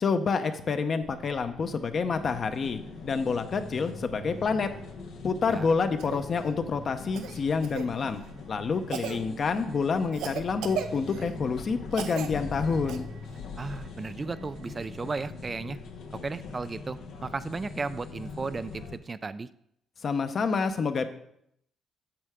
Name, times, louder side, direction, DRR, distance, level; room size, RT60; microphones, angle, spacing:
voice 1, 0.0-4.7 5.2-8.2 8.5-13.1 20.0-21.0, left 5 dB, 50° left, 8 dB, 0.8 m, -28 dB
sound 1, 1.0-19.0, right 1 dB, 55° right, 0.9 m, -47 dB
sound 2, 2.1-19.0, left 5 dB, 80° left, 0.8 m, -43 dB
Cough, 6.0-6.2 7.1-7.9 8.9-9.2 10.1-11.3 11.9-12.3 12.9-13.0 14.8-14.9, right 9 dB, 90° right, 0.6 m, -36 dB
voice 2, 13.6-15.8 16.2-19.5, right 4 dB, 30° right, 13 dB, 0.3 m, -35 dB
8.7 x 6.5 x 3.6 m, 0.73 s
cardioid pair, 90°, 0 cm